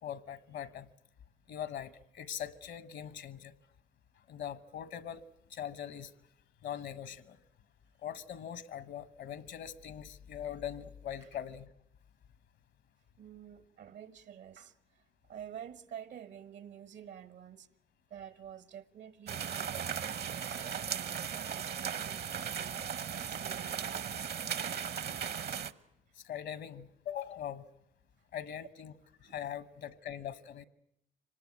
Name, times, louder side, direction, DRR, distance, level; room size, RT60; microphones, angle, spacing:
voice 1, 0.0-0.9 1.5-3.5 4.3-5.2 5.5-6.1 6.6-7.4 8.0-11.7 26.2-27.6 28.3-28.9 29.2-30.6, left 9 dB, 75° left, 1.2 m, -41 dB
voice 2, 13.2-14.7 15.3-17.7 18.1-20.0 20.2-24.0 29.2-29.4, right 9 dB, 75° right, 1.4 m, -49 dB
sound 1, 19.3-25.7, right 8 dB, 60° right, 1.0 m, -37 dB
25.0 x 19.0 x 9.5 m
supercardioid pair, 65°, 18 cm